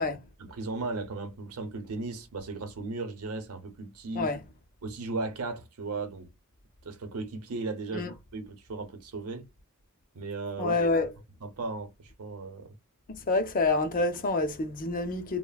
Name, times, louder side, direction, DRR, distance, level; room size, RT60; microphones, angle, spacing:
voice 1, 0.4-4.3 4.8-6.3 6.8-9.5 10.1-10.7 11.4-12.8, right 3 dB, 80° right, 0.7 m, -36 dB
voice 2, 10.6-11.1 13.2-15.4, left 3 dB, 40° left, 0.6 m, -27 dB
3.1 x 2.1 x 2.3 m
head